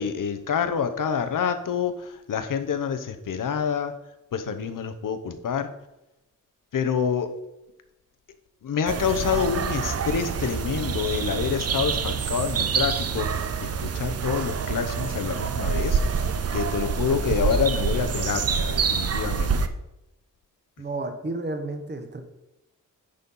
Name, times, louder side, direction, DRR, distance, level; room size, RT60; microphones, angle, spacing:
voice 1, 0.0-3.9 4.3-5.7 6.7-7.3 8.6-19.7, left 7 dB, 80° left, 8 dB, 0.9 m, -27 dB
sound 1, 8.9-19.7, right 6 dB, 50° right, 0.6 m, -26 dB
voice 2, 20.8-22.2, right 2 dB, 35° right, 6 dB, 1.1 m, -31 dB
10.0 x 4.3 x 5.5 m, 0.88 s
wide cardioid pair, 175°, 32 cm